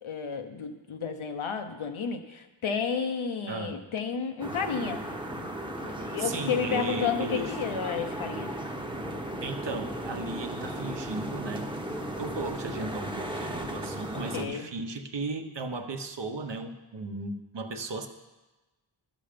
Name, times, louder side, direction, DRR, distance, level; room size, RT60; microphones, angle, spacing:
voice 1, 0.0-5.0 5.8-8.5 14.3-14.7, left 6 dB, 75° left, 6 dB, 1.0 m, -31 dB
sound 1, 4.4-14.5, right 1 dB, 10° right, 0.9 m, -36 dB
voice 2, 6.2-7.5 9.4-11.7 12.2-18.1, right 2 dB, 60° right, 6 dB, 0.9 m, -35 dB
11.5 x 6.3 x 5.1 m, 1.1 s
wide cardioid pair, 65°, 49 cm